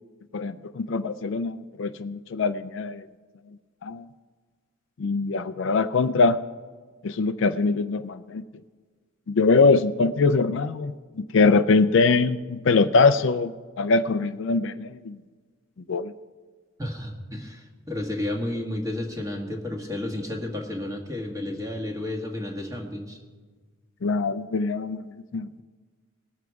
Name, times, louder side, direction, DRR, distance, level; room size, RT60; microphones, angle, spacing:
voice 1, 0.3-3.0 3.8-4.1 5.0-6.4 7.0-8.4 9.3-13.5 13.8-15.2 15.9-16.1 24.0-25.6, left 4 dB, 60° left, 11 dB, 0.4 m, -23 dB
voice 2, 16.8-23.2, left 1 dB, 15° right, 1 dB, 1.5 m, -32 dB
19.5 x 7.1 x 4.7 m, 1.5 s
head